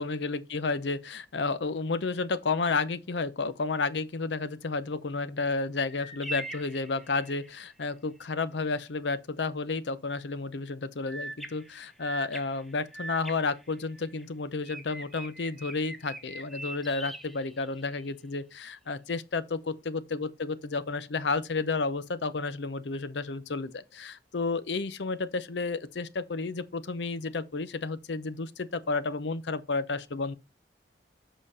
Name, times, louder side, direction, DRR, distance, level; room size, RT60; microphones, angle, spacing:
voice 1, 0.0-30.4, left 3 dB, 80° left, 0.7 m, -31 dB
sound 1, 5.9-7.6 11.1-14.2 14.6-18.1, right 1 dB, ahead, 0.9 m, -42 dB
7.5 x 5.1 x 4.1 m
head